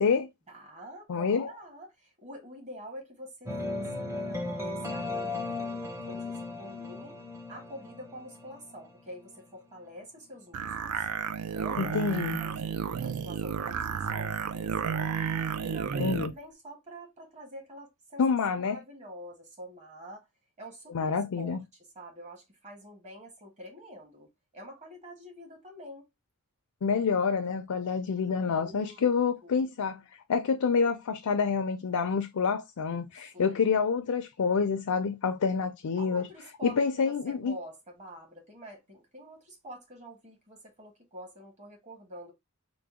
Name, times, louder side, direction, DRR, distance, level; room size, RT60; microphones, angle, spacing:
voice 1, 0.5-7.2 7.5-11.1 11.5-15.3 15.6-18.2 18.5-20.2 20.6-21.1 21.4-21.6 21.9-26.1 28.4-29.1 29.4-29.7 33.3-33.7 36.0-42.3, equal, 35° right, 1.3 m, -47 dB
voice 2, 1.1-1.5 11.8-12.4 16.0-16.3 18.2-18.8 20.9-21.6 26.8-30.0 30.3-36.3 36.6-37.6, left 5 dB, 85° left, 0.5 m, -27 dB
sound 1, 3.5-9.4, left 2 dB, 15° right, 0.6 m, -36 dB
sound 2, 10.5-16.3, right 7 dB, 85° right, 0.4 m, -32 dB
3.8 x 2.1 x 3.5 m
head